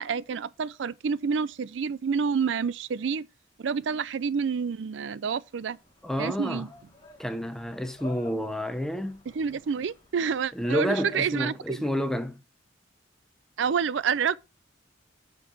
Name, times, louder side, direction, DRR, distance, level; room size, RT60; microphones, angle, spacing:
voice 1, 0.0-3.3 3.6-5.8 6.2-6.7 9.3-11.9 13.6-14.4, right 6 dB, 70° right, 0.4 m, -28 dB
sound 1, 5.4-11.7, left 1 dB, 25° left, 1.7 m, -49 dB
voice 2, 6.0-6.7 7.2-9.2 10.5-12.4, equal, 5° left, 0.7 m, -29 dB
7.2 x 4.6 x 6.9 m
head